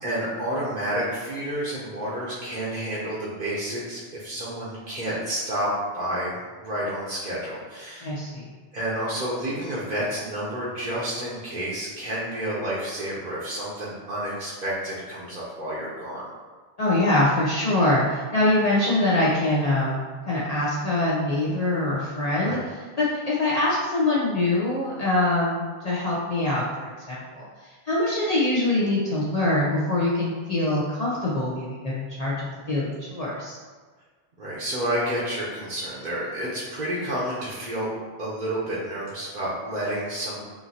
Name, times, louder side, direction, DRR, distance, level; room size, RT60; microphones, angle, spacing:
voice 1, 0.0-8.1 8.7-16.3 22.4-22.7 34.4-37.9 38.2-40.4, right 1 dB, 50° right, -7 dB, 0.9 m, -30 dB
voice 2, 8.0-8.4 16.8-22.6 23.0-27.5 27.9-33.6, left 2 dB, 45° left, -7 dB, 0.7 m, -24 dB
5.7 x 2.6 x 2.8 m, 1.4 s
omnidirectional pair, 1.0 m